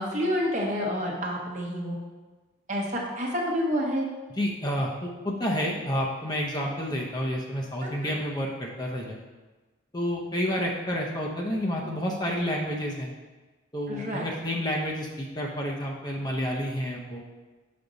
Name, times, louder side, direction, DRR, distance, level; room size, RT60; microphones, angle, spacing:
voice 1, 0.0-2.0 2.7-4.1 7.8-8.2 13.9-14.3, equal, 40° right, -2 dB, 1.1 m, -29 dB
voice 2, 4.4-9.2 9.9-13.1 13.7-17.2, equal, 20° left, -2 dB, 0.6 m, -30 dB
5.9 x 5.2 x 4.0 m, 1.2 s
head